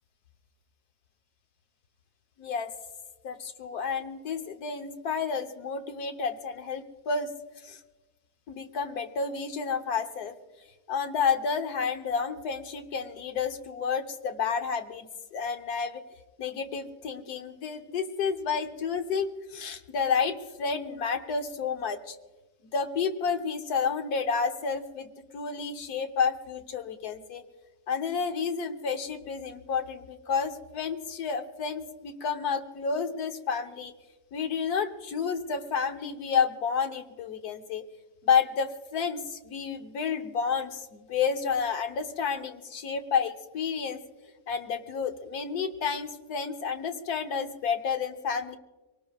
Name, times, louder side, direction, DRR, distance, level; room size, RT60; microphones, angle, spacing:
voice 1, 2.4-2.7 3.2-7.3 7.6-7.8 8.5-10.3 10.9-16.0 16.4-22.2 22.7-27.4 27.9-33.9 34.3-37.8 38.3-44.0 44.5-48.6, left 6 dB, 75° left, 7 dB, 1.4 m, -30 dB
24.5 x 18.5 x 2.3 m, 1.2 s
omnidirectional pair, 1.7 m